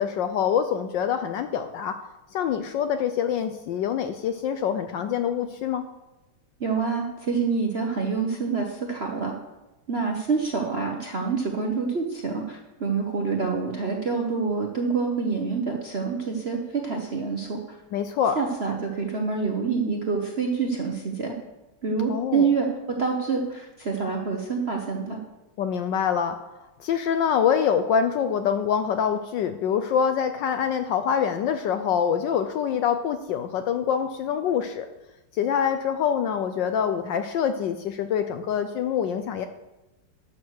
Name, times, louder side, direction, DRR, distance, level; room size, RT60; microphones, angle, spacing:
voice 1, 0.0-2.0 2.3-5.8 17.9-18.4 22.1-22.5 25.6-26.4 26.8-34.9 35.3-39.5, left 8 dB, 75° left, 8 dB, 1.1 m, -25 dB
voice 2, 6.6-9.3 9.9-17.6 18.4-21.3 21.8-25.2, right 5 dB, 50° right, 1 dB, 0.8 m, -27 dB
11.5 x 6.5 x 6.4 m, 1.0 s
omnidirectional pair, 2.4 m